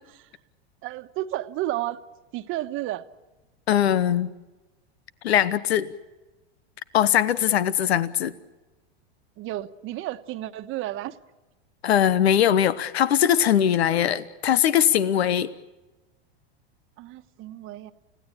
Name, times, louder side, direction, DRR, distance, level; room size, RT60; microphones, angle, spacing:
voice 1, 0.8-2.1 2.3-3.1 9.4-11.2 17.0-17.9, right 15 dB, 40° right, 9 dB, 1.2 m, -32 dB
voice 2, 3.7-4.3 5.2-5.9 6.9-8.3 11.8-15.5, left 10 dB, 90° left, 16 dB, 1.1 m, -21 dB
30.0 x 17.0 x 8.7 m, 1.1 s
hypercardioid pair, 120°, 31 cm